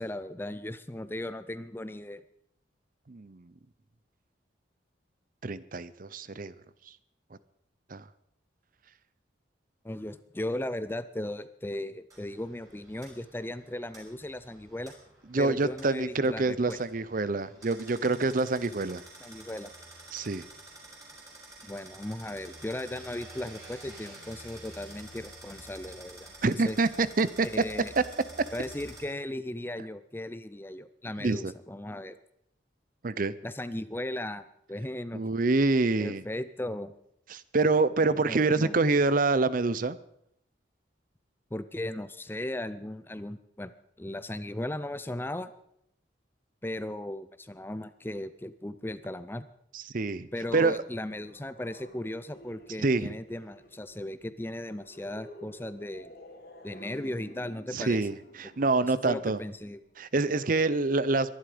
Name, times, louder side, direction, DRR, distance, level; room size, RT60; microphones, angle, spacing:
voice 1, 0.0-2.2 9.8-14.9 15.4-16.8 19.2-19.7 21.6-26.8 27.4-27.9 28.5-32.2 33.4-35.2 36.0-36.9 38.1-38.7 41.5-43.7 44.0-45.5 46.6-49.5 50.3-56.1 56.6-58.0 59.0-59.8, left 1 dB, 10° left, 14 dB, 0.6 m, -37 dB
voice 2, 3.1-3.5 5.4-6.5 7.9-8.0 15.3-19.0 20.1-20.4 26.4-27.5 31.2-31.5 33.0-33.3 35.1-36.2 37.3-40.0 49.7-50.8 52.8-53.1 57.7-59.4 60.0-61.3, right 3 dB, 45° right, 16 dB, 0.6 m, -26 dB
sound 1, 12.1-29.0, right 2 dB, 20° right, 5.7 m, -49 dB
sound 2, 50.2-59.9, equal, 55° left, 2.7 m, -52 dB
23.0 x 11.5 x 5.0 m, 0.75 s
head